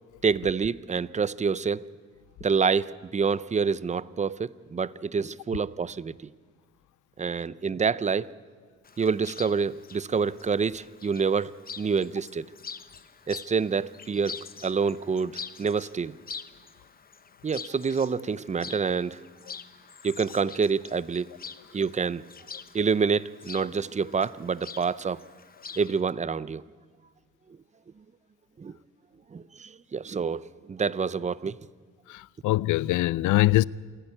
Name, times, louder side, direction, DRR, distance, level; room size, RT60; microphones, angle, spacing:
voice 1, 0.2-1.9 2.4-6.2 7.2-8.3 9.0-11.5 11.8-12.5 13.3-16.2 17.4-19.2 20.0-21.3 21.7-22.2 22.7-25.2 25.8-26.6 28.6-28.8 29.3-30.4 30.7-31.6, right 5 dB, 25° right, 0.6 m, -27 dB
Chirp tweet, 8.8-25.9, left 6 dB, 30° left, 0.9 m, -45 dB
voice 2, 32.1-33.6, left 17 dB, 80° left, 0.5 m, -23 dB
28.0 x 10.5 x 9.9 m
cardioid pair, 90°, 30 cm